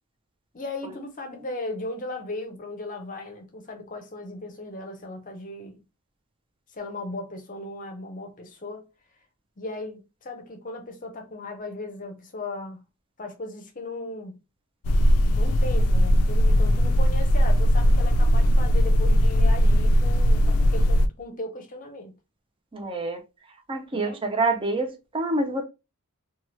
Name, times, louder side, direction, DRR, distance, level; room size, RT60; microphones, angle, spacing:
voice 1, 0.5-5.8 6.7-8.9 9.6-12.8 13.2-14.4 15.3-22.1 23.9-24.2, left 2 dB, 35° left, 0.7 m, -37 dB
sound 1, 14.8-21.1, equal, 80° left, 0.4 m, -19 dB
voice 2, 22.7-23.2 23.7-25.6, right 2 dB, 25° right, 0.5 m, -27 dB
2.9 x 2.3 x 3.0 m
head